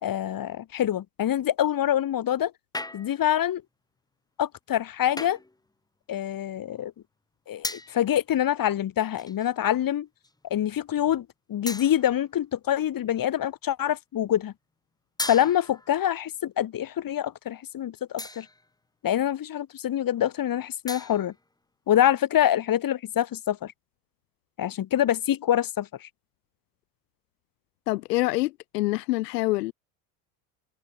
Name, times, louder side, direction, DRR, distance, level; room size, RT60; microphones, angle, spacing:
voice 1, 0.0-2.5 2.9-3.6 4.4-5.4 6.1-6.9 7.5-10.1 10.5-14.5 15.3-18.5 19.0-21.3 21.9-23.7 24.6-26.1, left 11 dB, 45° left, 5.5 m, -25 dB
sound 1, 2.7-3.4 5.2-5.6 7.6-8.1 9.2-9.6 10.2-10.4 11.7-12.3 15.2-16.0 18.2-18.7 20.9-21.4, left 2 dB, 10° left, 2.6 m, -37 dB
voice 2, 27.9-29.7, left 20 dB, 75° left, 1.9 m, -26 dB
hypercardioid pair, 80°, 48 cm